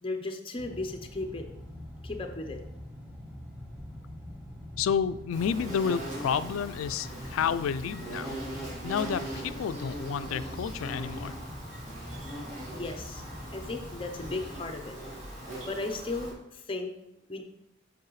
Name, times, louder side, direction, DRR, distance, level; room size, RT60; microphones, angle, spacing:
voice 1, 0.0-1.5 2.0-2.6 12.7-13.2 13.5-15.3 15.7-16.9 17.3-17.4, left 2 dB, 25° left, 4 dB, 0.7 m, -36 dB
sound 1, 0.6-14.6, left 1 dB, 5° right, 1.0 m, -44 dB
voice 2, 4.8-8.4 8.8-11.4, left 7 dB, 85° left, 15 dB, 0.3 m, -30 dB
Insect, 5.3-16.3, right 1 dB, 35° right, 2.1 m, -40 dB
7.4 x 5.4 x 3.2 m, 0.85 s
head